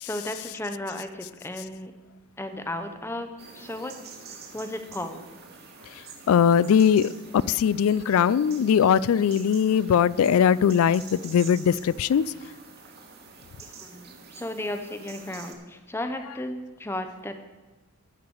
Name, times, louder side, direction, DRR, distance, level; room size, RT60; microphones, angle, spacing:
voice 1, 0.0-1.9 2.4-3.9 4.3-5.3 13.6-17.4, left 1 dB, 10° left, 0.6 m, -35 dB
sound 1, 3.4-15.5, right 5 dB, 45° right, 1.3 m, -47 dB
voice 2, 6.3-12.2, left 8 dB, 75° left, 0.3 m, -20 dB
12.5 x 4.9 x 8.4 m
head